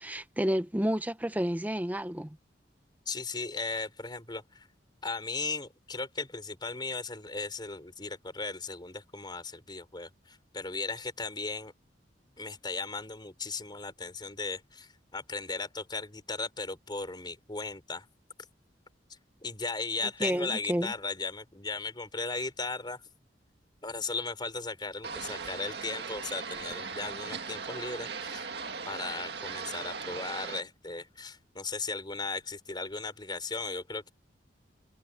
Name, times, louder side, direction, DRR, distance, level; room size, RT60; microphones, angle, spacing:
voice 1, 0.0-2.4 20.2-20.9, equal, 10° right, 0.9 m, -30 dB
voice 2, 3.1-4.7 5.0-11.7 12.4-18.1 19.4-23.0 23.8-28.5 28.9-34.1, left 3 dB, 25° left, 4.2 m, -37 dB
sound 1, 25.0-30.6, right 5 dB, 65° right, 2.1 m, -38 dB
head